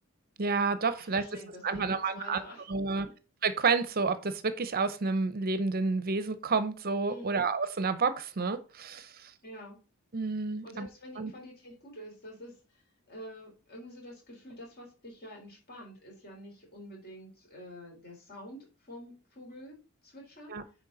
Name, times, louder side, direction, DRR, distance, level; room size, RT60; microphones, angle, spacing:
voice 1, 0.4-2.4 2.7-3.1 3.4-9.3 10.1-10.9 11.2-11.3 20.5-20.6, right 4 dB, 40° right, 0.7 m, -30 dB
voice 2, 1.0-2.7 3.0-3.1 7.1-7.4 9.4-9.8 10.6-12.8 13.1-19.8 20.0-20.6, equal, 45° left, 3.6 m, -48 dB
9.9 x 4.4 x 3.9 m
head